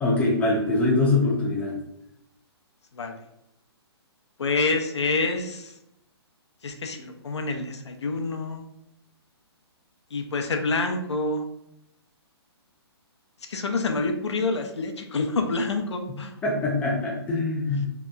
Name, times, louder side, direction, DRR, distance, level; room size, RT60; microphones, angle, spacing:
voice 1, 0.0-1.8 16.4-17.9, left 2 dB, 10° left, -4 dB, 0.4 m, -23 dB
voice 2, 4.4-5.7 6.6-8.6 10.1-11.4 13.5-16.3, left 3 dB, 90° left, 4 dB, 0.5 m, -27 dB
2.8 x 2.2 x 2.3 m, 0.82 s
hypercardioid pair, 145°, 14 cm